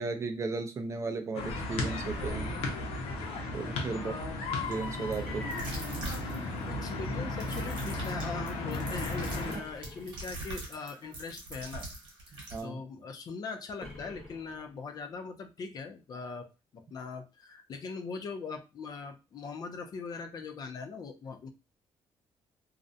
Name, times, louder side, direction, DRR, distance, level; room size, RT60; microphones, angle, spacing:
voice 1, 0.0-2.5 3.5-4.1 4.7-5.5 9.5-9.6 12.5-12.8, right 4 dB, 30° right, 6 dB, 0.4 m, -35 dB
sound 1, 1.3-9.5, left 2 dB, 80° left, 0.6 m, -35 dB
voice 2, 3.9-4.4 5.4-5.5 6.7-11.9 12.3-16.5 16.7-21.5, left 4 dB, 40° left, 7 dB, 0.4 m, -41 dB
sound 2, 4.7-4.8 5.1-5.2 5.5-6.7 7.3-12.6, right 2 dB, 55° right, 1.2 m, -43 dB
sound 3, 5.2-6.6 9.5-10.6 13.8-15.1, left 1 dB, 5° left, 1.0 m, -50 dB
2.4 x 2.1 x 2.6 m, 0.29 s
cardioid pair, 145°, 10 cm